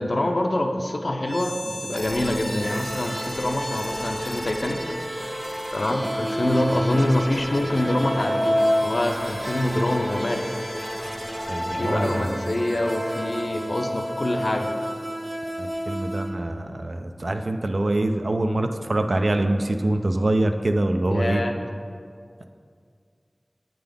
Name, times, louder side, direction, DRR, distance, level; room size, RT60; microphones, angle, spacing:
voice 1, 0.0-4.8 5.7-10.4 11.7-14.7 21.1-21.5, left 1 dB, 60° left, 4 dB, 0.5 m, -25 dB
sound 1, 1.2-15.1, equal, ahead, 0.6 m, -36 dB
sound 2, 2.6-16.3, equal, 25° right, 1.0 m, -30 dB
voice 2, 11.5-12.3 15.6-21.4, right 1 dB, 65° right, 6 dB, 0.4 m, -24 dB
8.7 x 3.8 x 3.4 m, 2.2 s
wide cardioid pair, 50°, 0 cm